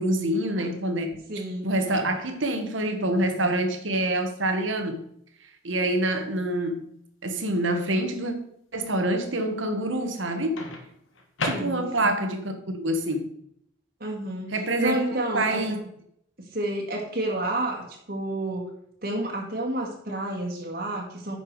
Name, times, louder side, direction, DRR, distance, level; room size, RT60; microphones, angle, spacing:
voice 1, 0.0-1.2 1.6-5.0 5.6-6.9 7.2-8.3 8.7-10.6 11.4-13.3 14.5-15.0 15.3-15.8, right 1 dB, 75° right, 6 dB, 1.4 m, -26 dB
voice 2, 1.3-1.7 11.5-12.2 14.0-14.5 14.8-15.8 16.5-18.7 19.0-21.4, right 1 dB, 50° right, -2 dB, 2.1 m, -30 dB
Microwave oven, 1.9-2.5 4.5-4.8 10.6-12.2, left 2 dB, 80° left, 1.7 m, -35 dB
10.0 x 6.1 x 4.8 m, 0.72 s
head